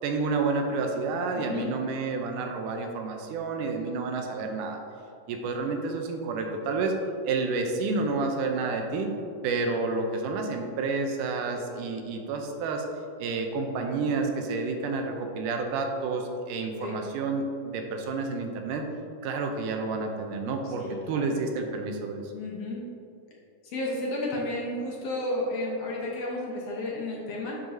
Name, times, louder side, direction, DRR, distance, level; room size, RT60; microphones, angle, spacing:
voice 1, 0.0-4.8 5.3-6.9 7.2-9.1 9.4-12.9 13.2-18.9 19.2-22.3, right 3 dB, 80° right, 3 dB, 2.2 m, -30 dB
voice 2, 1.3-1.7 16.8-17.0 20.8-21.3 22.3-22.8 23.6-27.6, left 2 dB, 65° left, -3 dB, 1.8 m, -32 dB
10.0 x 7.5 x 2.7 m, 2.6 s
omnidirectional pair, 3.8 m